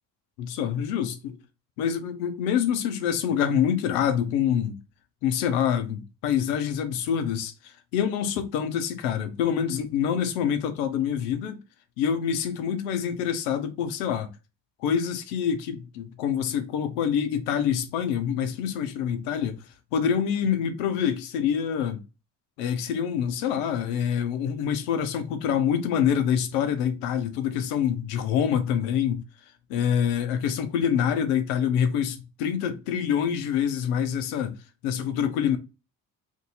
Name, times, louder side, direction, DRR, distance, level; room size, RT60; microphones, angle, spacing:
voice 1, 0.4-1.4 1.8-4.8 5.2-11.6 12.0-14.3 14.8-19.6 19.9-22.0 22.6-29.2 29.7-34.6 34.8-35.6, left 8 dB, 85° left, 0.7 m, -26 dB
2.7 x 2.6 x 3.8 m
hypercardioid pair, 45°, 43 cm